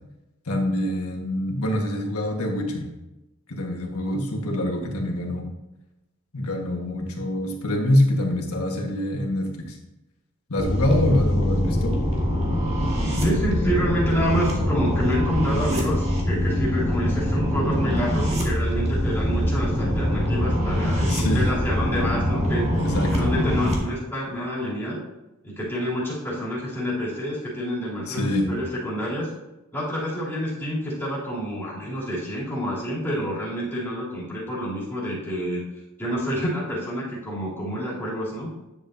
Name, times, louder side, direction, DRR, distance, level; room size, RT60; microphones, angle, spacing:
voice 1, 0.4-2.9 3.5-5.4 6.3-9.8 10.5-12.0 13.6-13.8 21.1-21.5 22.7-23.3 28.1-28.5, left 1 dB, 75° left, 1 dB, 1.5 m, -25 dB
sound 1, 10.6-23.7, equal, 30° right, 1.7 m, -23 dB
voice 2, 13.2-22.7 23.1-25.0 25.4-29.3 29.7-35.6 36.0-38.5, equal, 10° left, -8 dB, 3.1 m, -28 dB
10.0 x 7.3 x 2.7 m, 0.99 s
head